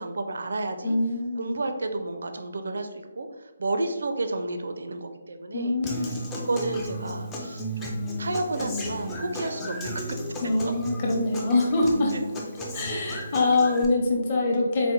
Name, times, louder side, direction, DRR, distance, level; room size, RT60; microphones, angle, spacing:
voice 1, 0.0-1.0 1.4-3.3 3.6-10.0 12.9-13.2, right 2 dB, 70° right, 7 dB, 0.4 m, -31 dB
voice 2, 0.8-1.5 5.5-6.2 10.4-12.1 12.7-14.9, left 2 dB, 25° left, -1 dB, 0.7 m, -24 dB
Human voice / Acoustic guitar, 5.9-13.8, equal, 10° left, 0.4 m, -34 dB
4.2 x 2.1 x 3.8 m, 1.2 s
hypercardioid pair, 175°, 0 cm